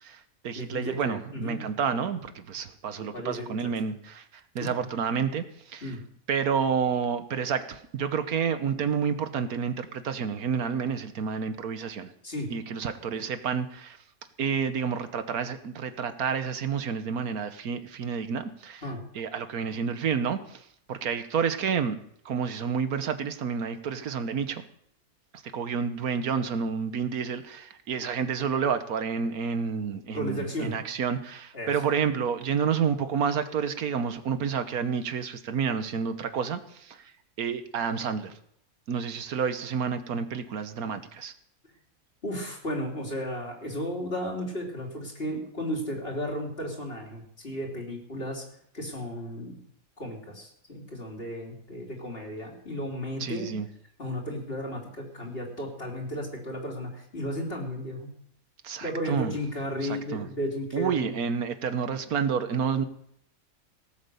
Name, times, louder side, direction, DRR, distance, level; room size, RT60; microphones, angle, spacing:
voice 1, 0.0-4.2 4.5-5.9 6.3-12.1 12.5-14.0 14.4-18.8 19.1-22.0 22.2-24.6 25.3-37.0 37.4-38.3 38.9-41.3 53.2-53.7 58.6-59.4 59.8-60.3 60.7-62.9, right 6 dB, 85° right, 10 dB, 1.6 m, -29 dB
voice 2, 0.6-1.6 3.0-3.6 4.6-4.8 5.8-6.0 12.2-12.5 18.8-19.0 30.1-30.8 31.5-31.7 42.2-48.4 48.7-49.6 50.0-53.5 54.0-58.1 58.8-61.1, equal, 40° left, 0 dB, 3.5 m, -34 dB
18.0 x 8.6 x 6.8 m, 0.69 s
omnidirectional pair, 1.5 m